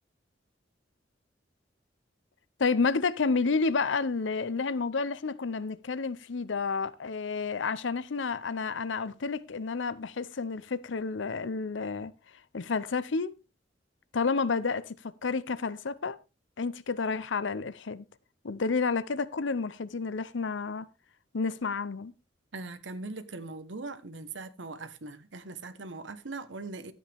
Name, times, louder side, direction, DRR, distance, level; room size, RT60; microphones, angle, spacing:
voice 1, 2.6-12.1 12.5-13.3 14.1-14.9 15.2-16.2 16.6-18.0 18.4-20.9 21.3-22.1, left 4 dB, 85° left, 0.7 m, -30 dB
voice 2, 22.5-26.9, right 3 dB, 80° right, 1.2 m, -40 dB
12.5 x 8.6 x 3.5 m
head